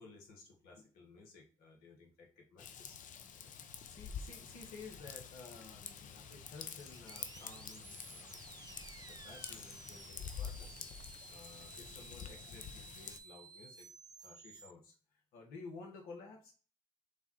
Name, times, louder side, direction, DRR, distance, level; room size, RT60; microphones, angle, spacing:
voice 1, 0.0-3.0 3.3-3.5 3.8-8.5 9.0-10.9 11.3-13.9 14.2-16.5, left 4 dB, 75° left, 3 dB, 1.3 m, -54 dB
Raindrop / Vehicle horn car horn honking / Trickle dribble, 2.6-13.2, left 7 dB, 55° left, 0.6 m, -48 dB
Bird, 6.0-12.5, right 1 dB, 15° left, 1.4 m, -63 dB
sound 1, 6.7-14.7, right 5 dB, 25° right, 0.3 m, -55 dB
3.5 x 3.2 x 4.2 m, 0.37 s
hypercardioid pair, 55°, 15 cm